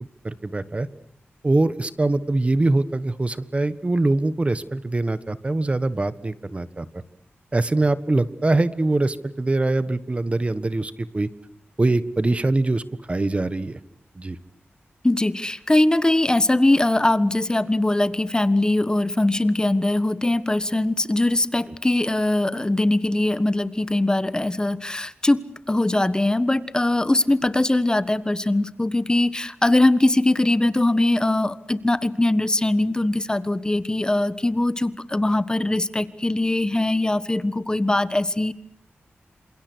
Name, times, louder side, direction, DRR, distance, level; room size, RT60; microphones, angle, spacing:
voice 1, 0.2-0.9 1.4-6.9 7.5-11.3 11.8-13.8 14.1-14.4, right 2 dB, 30° right, 14 dB, 1.4 m, -23 dB
voice 2, 15.0-25.4 25.7-38.5, left 1 dB, 20° left, 14 dB, 1.3 m, -21 dB
28.5 x 27.5 x 6.3 m, 0.65 s
wide cardioid pair, 85°, 4 cm